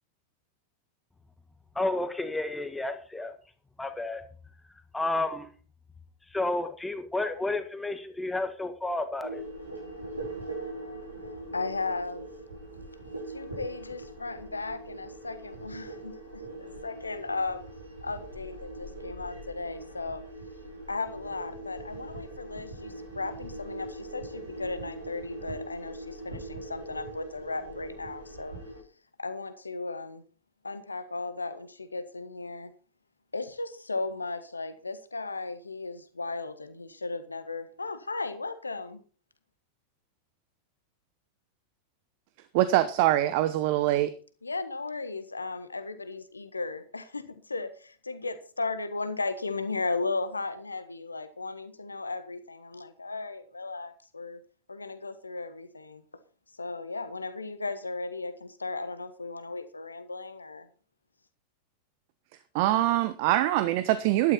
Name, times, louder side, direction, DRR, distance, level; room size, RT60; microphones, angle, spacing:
voice 1, 1.7-3.3 3.8-4.2 4.9-5.5 6.3-9.4, left 2 dB, 5° left, 8 dB, 1.6 m, -31 dB
sound 1, 9.2-28.8, right 2 dB, 80° right, 5.5 m, -41 dB
voice 2, 11.5-12.3 13.3-17.6 18.0-20.2 20.9-28.6 29.2-30.2 30.6-32.7 33.3-39.0 44.4-54.4 54.7-56.0 56.6-60.7, left 3 dB, 80° left, 11 dB, 1.5 m, -36 dB
voice 3, 42.5-44.1 62.5-64.3, right 14 dB, 45° right, 12 dB, 0.9 m, -24 dB
12.0 x 11.5 x 4.3 m, 0.40 s
figure-of-eight pair, 90°, 0 cm